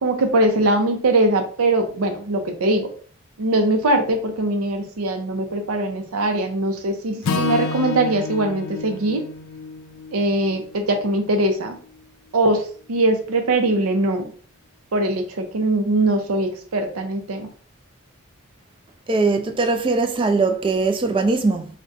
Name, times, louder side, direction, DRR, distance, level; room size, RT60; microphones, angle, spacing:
voice 1, 0.0-2.9 3.4-9.2 10.1-11.8 12.3-14.3 14.9-17.5, right 2 dB, 80° right, 0.6 m, -21 dB
Acoustic guitar / Strum, 7.2-11.5, left 4 dB, 65° left, 0.4 m, -29 dB
voice 2, 19.1-21.7, right 3 dB, 25° right, 0.3 m, -20 dB
2.4 x 2.2 x 3.7 m
head